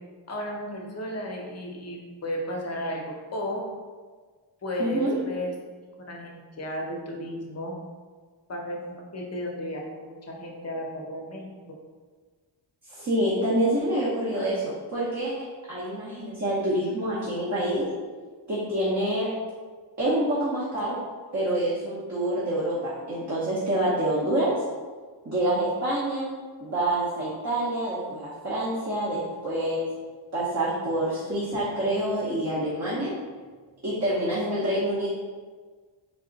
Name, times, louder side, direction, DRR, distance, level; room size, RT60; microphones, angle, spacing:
voice 1, 0.3-3.0 3.3-3.6 4.6-5.5 6.0-7.7 8.5-11.5, equal, 35° left, 0 dB, 0.7 m, -33 dB
voice 2, 4.8-5.1 12.9-17.8 18.5-19.3 20.0-21.0 21.3-24.5 25.2-26.3 26.6-29.8 30.3-33.1 33.8-35.1, right 1 dB, 35° right, -8 dB, 0.9 m, -27 dB
3.5 x 2.4 x 3.8 m, 1.5 s
cardioid pair, 100°, 46 cm